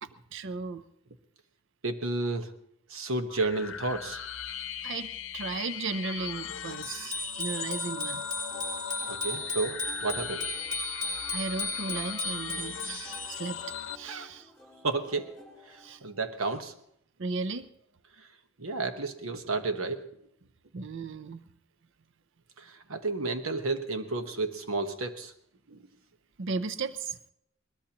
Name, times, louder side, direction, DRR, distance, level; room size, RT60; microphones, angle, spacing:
voice 1, 0.0-0.8 4.8-8.2 11.3-13.6 13.9-14.5 15.8-16.0 17.2-17.7 20.7-21.4 26.4-27.2, right 4 dB, 60° right, 13 dB, 0.6 m, -35 dB
voice 2, 1.8-2.5 2.9-4.2 9.1-10.4 14.0-14.3 14.8-15.3 16.0-16.7 18.6-20.2 22.9-25.3 25.7-25.8, right 3 dB, 80° right, 8 dB, 1.2 m, -31 dB
sound 1, 3.3-14.0, left 9 dB, 65° left, 0.7 m, -39 dB
Bicycle bell, 6.8-13.5, left 2 dB, 20° right, 6.4 m, -35 dB
sound 2, 8.5-16.4, left 1 dB, ahead, 5.0 m, -53 dB
22.0 x 20.0 x 3.0 m, 0.76 s
head